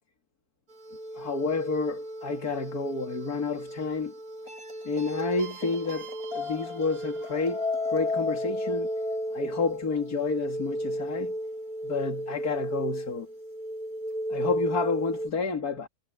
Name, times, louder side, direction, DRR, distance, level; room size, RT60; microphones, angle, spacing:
sound 1, 0.8-15.3, equal, 70° right, 5.5 m, -33 dB
voice 1, 1.1-4.1 4.8-8.9 9.3-11.3 11.8-13.3 14.3-15.9, left 4 dB, 75° left, 2.7 m, -30 dB
omnidirectional pair, 1.6 m